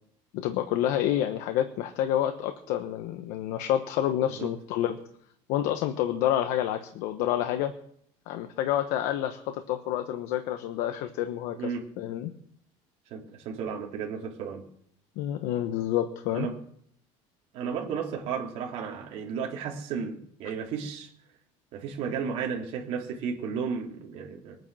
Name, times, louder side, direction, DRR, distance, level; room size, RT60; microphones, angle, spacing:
voice 1, 0.3-5.0 5.5-7.7 8.3-12.3 15.2-16.5, left 11 dB, 65° left, 7 dB, 1.1 m, -28 dB
voice 2, 13.1-14.6 16.3-16.5 17.5-21.1 21.7-24.6, right 6 dB, 50° right, 0 dB, 3.2 m, -33 dB
21.5 x 9.4 x 6.3 m, 0.68 s
cardioid pair, 175°, 14 cm